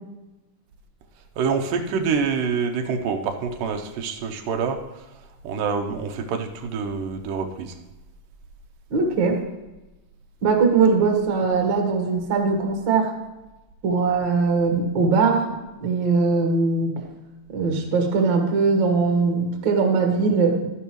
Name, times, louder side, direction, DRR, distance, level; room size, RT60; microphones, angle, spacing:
voice 1, 1.4-5.0 5.4-7.8, right 5 dB, 90° right, 4 dB, 2.5 m, -26 dB
voice 2, 8.9-9.4 10.4-13.1 13.8-15.5 15.8-17.0 17.5-20.7, right 4 dB, 45° right, 2 dB, 1.6 m, -20 dB
12.5 x 10.5 x 3.1 m, 1.1 s
omnidirectional pair, 3.8 m